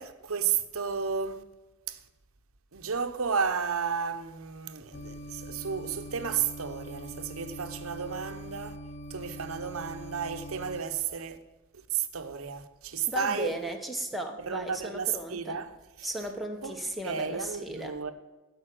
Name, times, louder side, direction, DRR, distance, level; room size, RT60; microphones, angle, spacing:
voice 1, 0.0-1.4 1.9-2.0 2.7-8.8 9.1-11.4 11.9-13.5 14.4-16.1 16.6-16.8 17.0-18.1, right 6 dB, 75° right, 0.9 m, -32 dB
sound 1, 4.9-10.8, equal, 55° left, 0.7 m, -43 dB
voice 2, 13.1-15.6 16.0-18.0, right 1 dB, ahead, 1.0 m, -36 dB
12.5 x 5.3 x 7.7 m
head